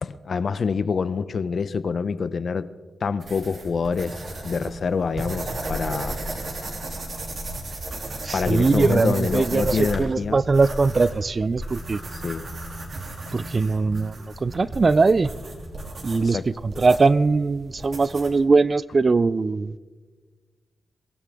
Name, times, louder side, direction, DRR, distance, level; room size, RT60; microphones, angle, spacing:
voice 1, 0.0-2.7 3.0-4.2 4.4-6.2 8.3-10.4 12.2-12.5 16.2-16.5, left 5 dB, 50° left, 0.6 m, -26 dB
sound 1, 3.2-18.4, right 2 dB, 50° right, 2.8 m, -35 dB
sound 2, 3.9-16.7, equal, 15° right, 2.2 m, -45 dB
voice 2, 8.2-12.0 13.3-15.3 16.0-19.8, right 4 dB, 35° right, 0.3 m, -21 dB
22.5 x 15.5 x 3.5 m
wide cardioid pair, 135°, 0 cm